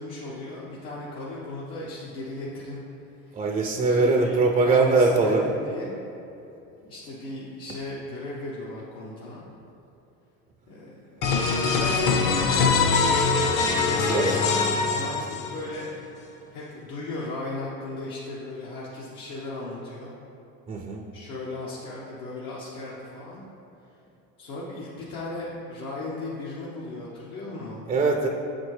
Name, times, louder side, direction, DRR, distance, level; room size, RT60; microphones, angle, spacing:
voice 1, 0.0-2.8 3.2-3.4 3.8-5.9 6.8-9.4 10.7-15.9 16.5-20.1 21.1-23.4 24.4-27.8, left 2 dB, 75° left, -6 dB, 1.0 m, -36 dB
voice 2, 3.3-5.5 14.0-14.4 20.7-21.0 27.9-28.3, right 3 dB, 15° right, 1 dB, 0.3 m, -21 dB
sound 1, 11.2-15.8, left 4 dB, 50° left, 0.8 m, -23 dB
7.4 x 4.2 x 3.1 m, 2.9 s
supercardioid pair, 95°, 40 cm